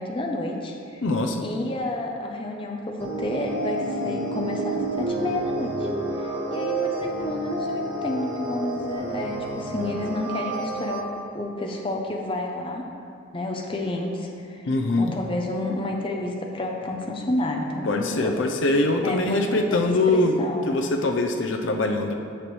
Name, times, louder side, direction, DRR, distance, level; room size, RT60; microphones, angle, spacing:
voice 1, 0.0-1.0 1.4-5.9 6.2-12.8 13.3-14.7 15.0-18.4 19.0-19.8 20.1-20.7, left 1 dB, 25° left, 1 dB, 0.6 m, -30 dB
voice 2, 1.0-1.4 14.6-15.1 17.8-22.1, left 2 dB, 70° left, 4 dB, 0.5 m, -23 dB
sound 1, 3.0-11.0, right 2 dB, 70° right, 1.3 m, -29 dB
8.9 x 6.7 x 3.1 m, 2.5 s
head